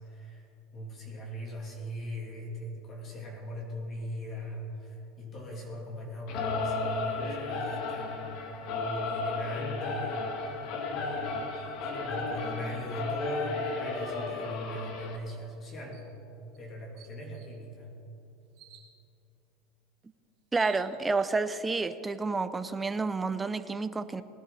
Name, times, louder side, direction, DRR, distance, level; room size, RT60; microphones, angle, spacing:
voice 1, 0.0-8.4 8.8-16.1 16.6-17.9, equal, 35° left, -1 dB, 2.8 m, -40 dB
Singing / Musical instrument, 6.3-15.2, left 3 dB, 60° left, 1.7 m, -34 dB
sound 1, 15.9-16.1 16.5-16.6 17.0-17.6 18.6-18.9 20.0-20.1 20.4-21.3, right 10 dB, 60° right, 1.7 m, -52 dB
voice 2, 20.5-24.2, right 3 dB, 15° right, 12 dB, 0.6 m, -30 dB
19.5 x 10.5 x 4.2 m, 2.9 s
supercardioid pair, 120°, 0 cm